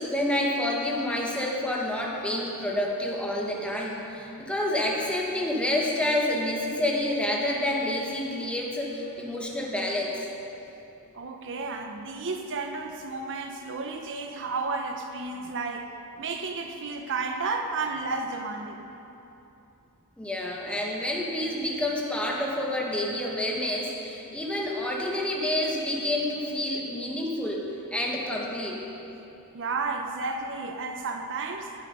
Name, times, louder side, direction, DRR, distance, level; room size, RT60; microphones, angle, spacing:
voice 1, 0.0-10.2 20.2-28.8, left 1 dB, 5° left, -2 dB, 1.5 m, -28 dB
voice 2, 11.1-15.9 16.2-18.8 29.5-31.7, right 4 dB, 60° right, 5 dB, 0.8 m, -32 dB
18.0 x 8.0 x 5.4 m, 3.0 s
head